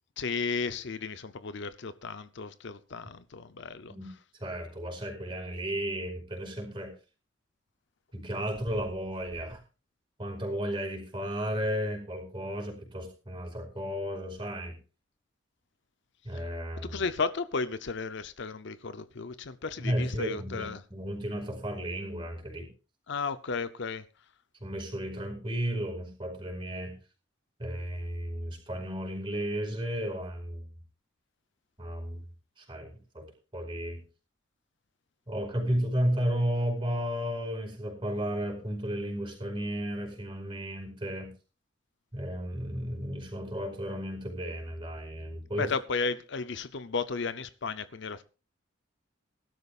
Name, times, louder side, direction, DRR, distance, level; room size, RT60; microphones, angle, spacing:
voice 1, 0.2-3.9 16.3-16.4 16.8-20.8 23.1-24.0 45.6-48.2, left 4 dB, 60° left, 0.7 m, -34 dB
voice 2, 4.4-6.9 8.1-9.6 10.2-14.7 16.2-17.0 19.8-22.7 24.6-26.9 27.6-30.7 31.8-32.2 32.6-32.9 33.1-33.2 33.5-34.0 35.3-41.3 42.1-45.7, equal, 25° right, 5.0 m, -33 dB
20.5 x 12.5 x 2.4 m
head